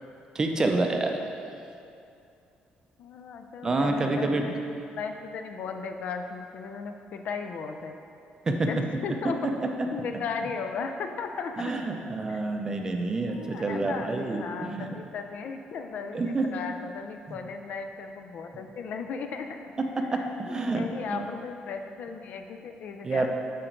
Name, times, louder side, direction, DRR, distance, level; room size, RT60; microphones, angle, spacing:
voice 1, 0.3-1.1 3.6-4.5 8.5-8.7 11.6-15.0 16.1-16.5 17.3-17.4 20.1-21.3 23.0-23.3, right 2 dB, 20° right, 3 dB, 0.5 m, -28 dB
voice 2, 3.0-4.6 5.0-8.0 8.5-9.4 9.9-11.7 12.3-12.4 13.3-23.3, left 5 dB, 55° left, 5 dB, 0.5 m, -36 dB
7.8 x 5.1 x 4.5 m, 2.6 s
cardioid pair, 170°, 3 cm